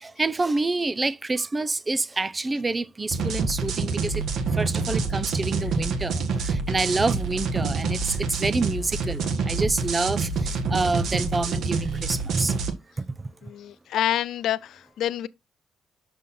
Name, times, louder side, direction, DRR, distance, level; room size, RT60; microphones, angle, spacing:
voice 1, 0.0-4.2 4.5-12.6 13.0-13.3, right 3 dB, 25° right, 0.6 m, -28 dB
sound 1, 3.1-12.7, right 4 dB, 75° right, 1.5 m, -27 dB
voice 2, 13.4-15.3, left 12 dB, 75° left, 0.5 m, -28 dB
6.6 x 5.5 x 4.2 m
cardioid pair, 90°, 0 cm